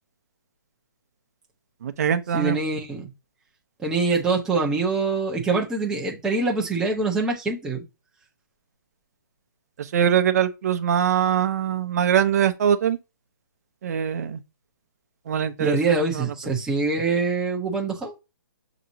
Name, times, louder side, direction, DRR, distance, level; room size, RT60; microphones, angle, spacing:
voice 1, 1.8-2.6 9.8-13.0 13.8-14.4 15.3-16.3, right 9 dB, 50° right, 0.7 m, -22 dB
voice 2, 2.3-3.1 3.8-7.8 15.6-18.1, right 3 dB, 5° right, 0.8 m, -24 dB
6.5 x 2.9 x 2.7 m
hypercardioid pair, 155°, 11 cm